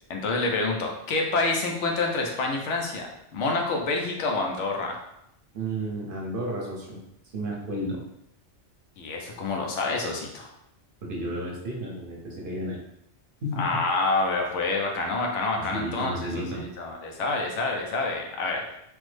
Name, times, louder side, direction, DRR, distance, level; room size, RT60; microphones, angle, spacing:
voice 1, 0.1-5.0 9.0-10.5 13.6-18.7, left 3 dB, 85° left, 1 dB, 1.0 m, -27 dB
voice 2, 5.5-7.0 7.3-8.0 11.1-12.8 13.4-13.8 15.6-16.6, right 1 dB, 55° right, -2 dB, 0.8 m, -32 dB
3.4 x 2.0 x 3.2 m, 0.81 s
omnidirectional pair, 1.2 m